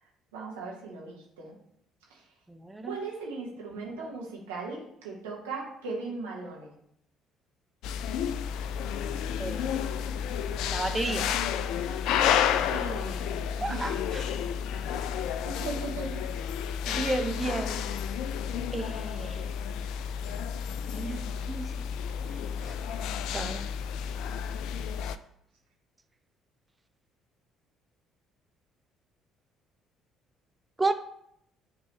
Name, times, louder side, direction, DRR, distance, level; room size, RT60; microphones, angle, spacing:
voice 1, 0.3-1.6 2.1-2.3 2.8-6.7 12.6-14.4 14.9-15.0 15.4-16.2, right 3 dB, 70° right, 1.9 m, -38 dB
voice 2, 2.5-3.0 9.4-10.0 10.7-11.3 13.6-14.3 16.9-17.9 18.7-19.5 20.7-21.9 22.3-22.8 23.3-23.7 30.8-30.9, right 2 dB, 15° right, 0.6 m, -33 dB
sound 1, 7.8-25.2, left 8 dB, 60° left, 0.3 m, -31 dB
10.5 x 3.8 x 3.4 m
figure-of-eight pair, 50°, 0 cm